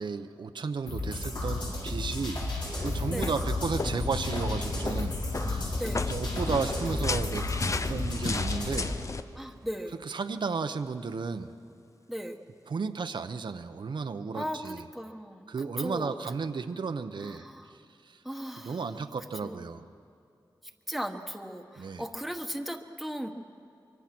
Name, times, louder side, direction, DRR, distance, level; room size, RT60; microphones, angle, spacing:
voice 1, 0.0-2.4 2.8-5.7 6.1-7.5 7.9-8.9 10.0-11.5 12.7-14.8 15.5-17.5 17.7-18.2 18.6-19.8 21.8-22.0, right 5 dB, 75° right, 8 dB, 0.8 m, -33 dB
sound 1, 0.9-8.9, left 2 dB, 70° left, 6.2 m, -33 dB
sound 2, 2.8-9.2, left 3 dB, 40° left, 0.6 m, -34 dB
voice 2, 9.3-9.9 12.1-12.4 14.3-16.2 17.2-17.7 18.2-18.8 19.4-19.6 20.9-23.3, equal, ahead, 4 dB, 1.2 m, -37 dB
24.0 x 24.0 x 6.1 m, 2.6 s
wide cardioid pair, 115°, 8 cm